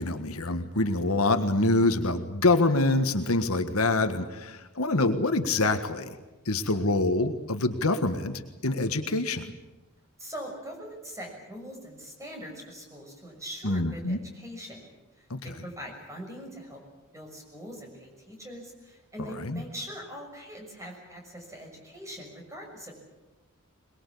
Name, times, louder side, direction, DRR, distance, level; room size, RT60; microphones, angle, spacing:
voice 1, 0.0-6.1 6.4-9.5 13.6-14.2 15.3-15.4 19.2-19.6, left 2 dB, 70° left, 8 dB, 1.7 m, -26 dB
voice 2, 10.2-14.8 15.6-16.8 17.1-23.0, equal, 15° right, 2 dB, 6.4 m, -42 dB
22.5 x 21.5 x 8.5 m, 1.1 s
head